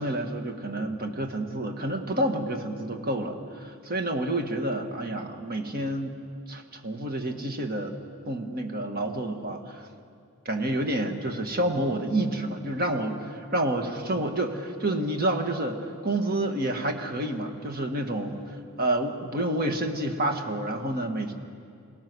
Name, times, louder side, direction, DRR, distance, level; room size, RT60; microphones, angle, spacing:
voice 1, 0.0-6.1 6.5-8.0 8.3-9.9 10.4-21.3, right 1 dB, 45° right, 4 dB, 1.8 m, -29 dB
28.0 x 18.0 x 6.3 m, 2.3 s
head